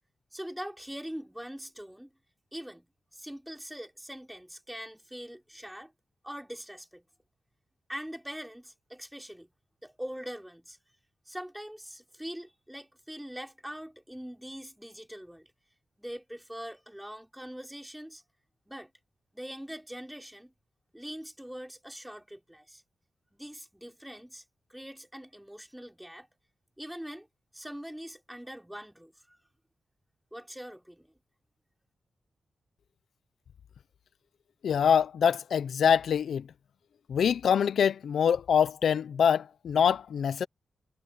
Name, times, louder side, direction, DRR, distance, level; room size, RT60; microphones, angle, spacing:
voice 1, 0.3-2.1 2.5-5.9 6.2-7.1 7.9-9.5 9.8-10.8 11.3-15.5 16.0-18.2 18.7-18.9 19.3-20.5 20.9-22.8 23.3-24.4 24.7-26.3 26.8-27.3 27.5-29.4 30.3-31.1, equal, 5° right, 3.5 m, -43 dB
voice 2, 34.6-36.4 37.1-40.5, left 7 dB, 85° left, 0.5 m, -24 dB
wide cardioid pair, 155°, 0 cm